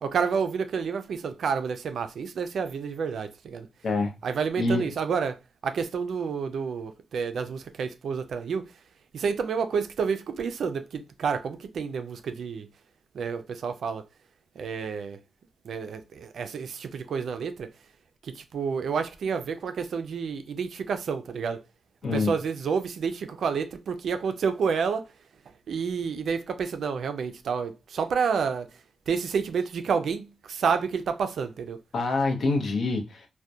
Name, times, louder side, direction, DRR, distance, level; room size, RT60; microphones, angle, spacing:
voice 1, 0.0-3.7 4.2-5.4 5.6-8.7 9.1-12.7 13.1-14.0 14.6-15.2 15.6-17.7 18.2-21.6 22.1-25.1 25.7-28.7 29.1-31.8, right 6 dB, 70° right, 0.3 m, -29 dB
voice 2, 4.6-4.9 22.0-22.3 31.9-33.3, left 3 dB, 60° left, 0.6 m, -26 dB
2.6 x 2.1 x 2.2 m
wide cardioid pair, 115°, 0 cm